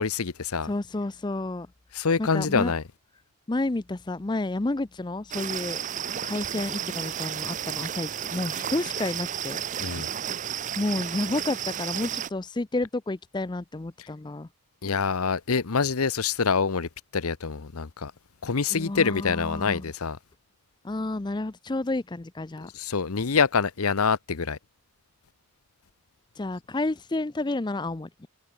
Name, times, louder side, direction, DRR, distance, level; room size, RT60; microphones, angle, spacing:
voice 1, 0.0-0.7 1.9-2.8 9.8-10.1 14.8-18.1 18.4-20.2 22.7-24.6, left 5 dB, 85° left, 0.9 m, -26 dB
voice 2, 0.6-1.7 2.2-2.7 3.5-5.8 6.2-9.6 10.8-14.5 18.7-19.9 20.8-22.7 26.4-28.3, left 2 dB, 20° left, 0.5 m, -30 dB
sound 1, 5.3-12.3, right 9 dB, 35° right, 0.4 m, -32 dB
head